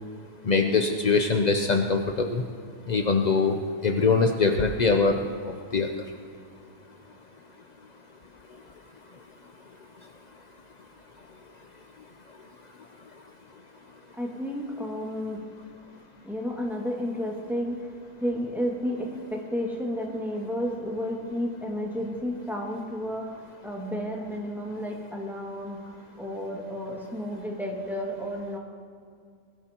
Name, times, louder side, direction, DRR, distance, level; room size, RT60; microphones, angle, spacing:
voice 1, 0.5-2.4 2.9-5.9, left 4 dB, 65° left, 4 dB, 0.4 m, -23 dB
voice 2, 14.2-15.4 16.2-17.8 18.2-28.6, equal, ahead, -3 dB, 2.0 m, -32 dB
21.0 x 12.5 x 3.0 m, 2.3 s
omnidirectional pair, 1.7 m